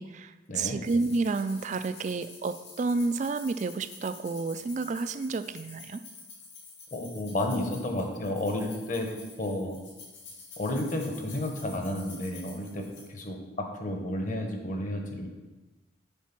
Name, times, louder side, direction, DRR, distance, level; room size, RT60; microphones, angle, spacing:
voice 1, 0.5-6.0, right 3 dB, 40° right, 11 dB, 0.3 m, -30 dB
sound 1, 0.8-13.1, left 4 dB, 65° left, 2.4 m, -48 dB
voice 2, 6.9-9.8 10.6-13.4 13.7-15.3, left 1 dB, 40° left, 3 dB, 1.1 m, -32 dB
7.3 x 4.6 x 6.0 m, 1.2 s
head